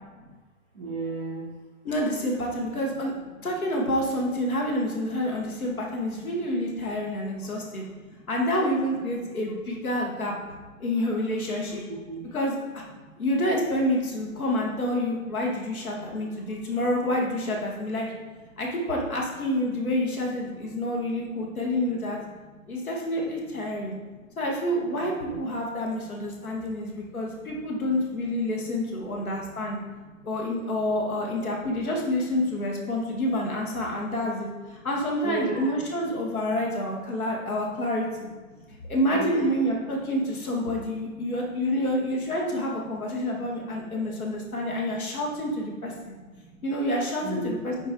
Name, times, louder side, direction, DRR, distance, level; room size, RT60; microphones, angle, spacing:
voice 1, 0.7-1.5 7.5-7.7 8.0-8.2 11.9-12.3 15.9-16.1 20.7-20.8 22.6-22.7 23.9-24.2 24.9-25.4 26.4-26.7 27.3-27.4 29.0-29.1 29.4-29.7 30.0-30.2 35.2-35.7 38.5-38.7 39.1-39.5 46.4-46.6 47.2-47.9, right 3 dB, 5° right, -11 dB, 0.5 m, -36 dB
voice 2, 1.8-3.1 3.4-7.8 8.3-10.3 10.8-11.8 12.3-12.8 13.2-18.1 18.6-22.2 22.7-24.0 24.4-29.8 30.2-34.5 34.8-38.3 38.9-46.1 46.6-47.9, left 1 dB, 80° left, -1 dB, 2.7 m, -28 dB
8.4 x 4.9 x 4.8 m, 1.3 s
hypercardioid pair, 165°, 42 cm